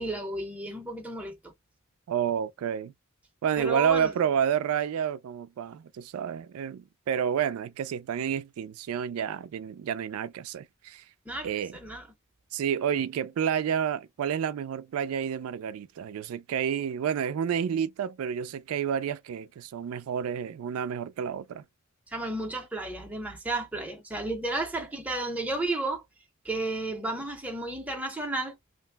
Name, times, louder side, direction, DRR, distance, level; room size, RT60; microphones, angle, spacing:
voice 1, 0.0-1.5 3.6-4.1 11.3-12.0 22.1-26.0 26.4-28.6, right 2 dB, 5° right, 0.6 m, -33 dB
voice 2, 2.1-2.9 3.4-11.0 11.4-11.8 12.5-21.6, right 8 dB, 85° right, 0.3 m, -29 dB
2.5 x 2.0 x 3.3 m
head